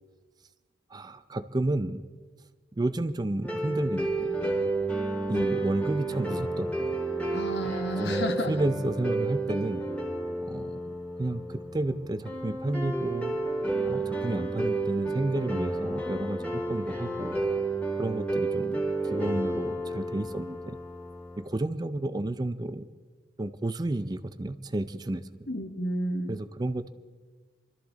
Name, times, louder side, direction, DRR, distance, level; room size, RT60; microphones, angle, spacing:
voice 1, 0.9-2.1 2.7-4.3 5.3-7.0 8.0-9.8 10.4-10.8 11.2-13.4 13.9-17.4 18.0-18.8 19.1-20.8 21.4-22.9 23.4-25.5 26.3-26.9, right 2 dB, 20° right, 12 dB, 0.4 m, -31 dB
sound 1, 3.4-21.4, right 2 dB, 5° left, 2.1 m, -31 dB
voice 2, 7.3-8.6 25.5-26.4, equal, 65° left, 7 dB, 1.3 m, -31 dB
24.0 x 13.5 x 4.0 m, 1.4 s
head